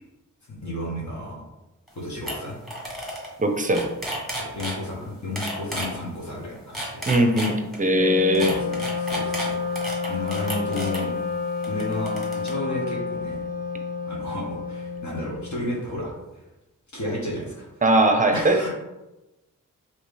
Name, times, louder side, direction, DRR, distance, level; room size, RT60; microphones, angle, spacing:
voice 1, 0.5-1.4 1.9-2.6 4.3-7.0 8.3-8.7 9.0-9.8 10.1-11.1 11.6-13.4 14.0-16.4 16.9-17.7 18.3-18.7, left 1 dB, 60° left, -4 dB, 1.2 m, -32 dB
sound 1, 1.9-2.0 2.3-2.4 2.6-3.3 3.6-4.8 5.4-5.9 6.6-7.8 8.3-11.0 11.6-12.5, equal, ahead, 1.4 m, -32 dB
voice 2, 3.4-3.9 7.1-8.6 17.8-18.7, right 1 dB, 25° right, 5 dB, 0.6 m, -20 dB
Wind instrument woodwind instrument, 7.9-15.7, left 5 dB, 30° left, 0.7 m, -30 dB
3.2 x 3.0 x 3.2 m, 1.0 s
cardioid pair, 65°, 33 cm